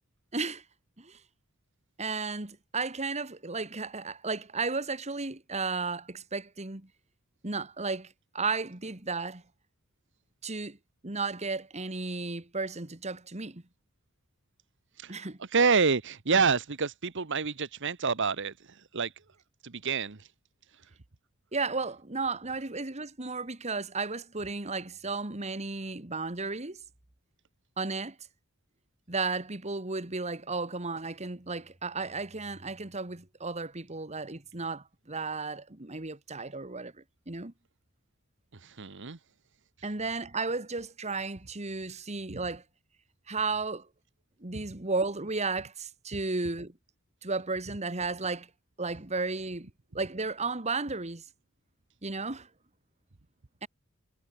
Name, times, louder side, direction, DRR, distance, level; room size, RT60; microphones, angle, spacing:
voice 1, 0.3-0.6 1.0-1.2 2.0-6.9 7.4-9.4 10.4-10.8 11.0-13.6 15.1-15.4 21.5-26.8 27.8-28.2 29.1-36.9 37.3-37.5 39.8-42.6 43.3-43.9 44.4-46.7 47.2-48.5 48.8-49.7 49.9-51.2 52.0-52.5 53.6-53.7, right 3 dB, 30° right, 1.9 m, -34 dB
voice 2, 15.0-19.1 19.6-20.3 38.5-39.2 41.9-42.0, right 5 dB, 60° right, 1.2 m, -28 dB
head